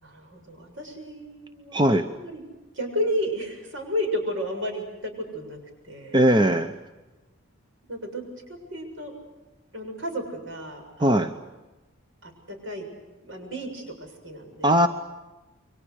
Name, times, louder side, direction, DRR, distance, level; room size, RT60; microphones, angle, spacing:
voice 1, 0.0-2.4 2.7-5.6 5.8-6.2 7.9-8.2 8.5-9.1 9.7-11.4 12.2-12.9 13.2-14.8, equal, 70° right, 4 dB, 7.0 m, -32 dB
voice 2, 1.7-2.1 6.1-6.7 11.0-11.3 14.6-14.9, right 1 dB, 20° right, 7 dB, 0.8 m, -19 dB
29.0 x 23.5 x 6.6 m, 1.1 s
head